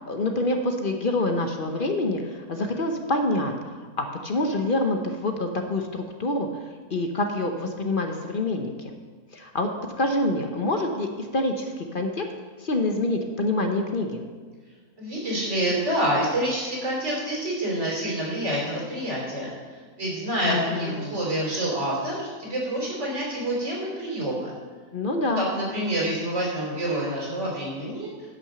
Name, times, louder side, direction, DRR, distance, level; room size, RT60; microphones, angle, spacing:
voice 1, 0.1-6.5 6.9-8.9 9.3-9.7 10.0-12.2 12.6-14.2 20.4-21.1 24.9-25.5, left 2 dB, 45° left, 4 dB, 0.8 m, -26 dB
voice 2, 15.0-19.5 20.0-24.5 25.3-28.1, right 1 dB, 50° right, -4 dB, 3.6 m, -27 dB
10.5 x 6.1 x 6.7 m, 1.5 s
omnidirectional pair, 1.6 m